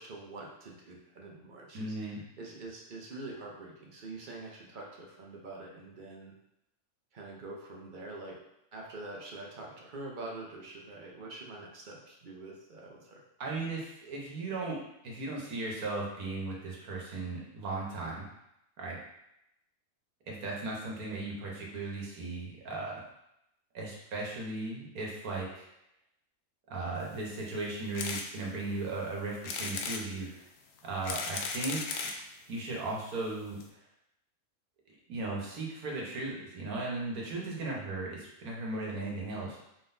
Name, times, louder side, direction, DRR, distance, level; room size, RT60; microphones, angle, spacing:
voice 1, 0.0-6.3 7.1-8.4 8.7-13.2, right 2 dB, 40° right, -2 dB, 0.8 m, -45 dB
voice 2, 1.7-2.2 13.4-14.8 15.0-18.3 18.8-19.0 20.3-23.0 23.7-25.7 26.7-30.4 30.8-32.1 32.5-33.6 35.1-39.6, right 2 dB, 75° right, -3 dB, 1.4 m, -37 dB
sound 1, 27.9-28.3 28.7-28.8 29.4-30.0 30.8-32.2 33.0-33.1 33.3-33.4 33.6-33.7, left 4 dB, 65° left, 0.6 m, -36 dB
4.8 x 3.8 x 2.6 m, 0.84 s
omnidirectional pair, 1.6 m